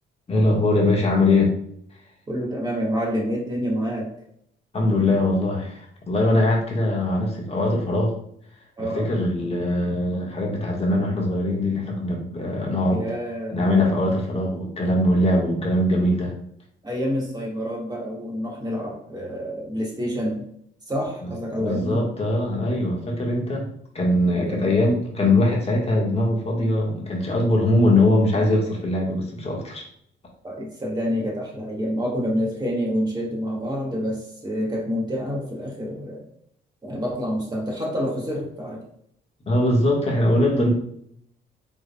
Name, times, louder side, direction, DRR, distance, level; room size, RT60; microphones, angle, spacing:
voice 1, 0.3-1.5 4.7-8.1 8.8-13.0 13.5-16.3 21.2-21.3 21.6-23.6 23.9-29.8 39.5-40.7, left 1 dB, 30° left, -2 dB, 1.5 m, -21 dB
voice 2, 2.3-4.1 8.8-9.1 12.9-13.5 16.8-20.4 20.9-22.1 24.4-24.7 30.4-36.2 36.8-38.8, equal, 20° right, -3 dB, 1.7 m, -28 dB
5.0 x 3.5 x 2.3 m, 0.68 s
cardioid pair, 90°, 20 cm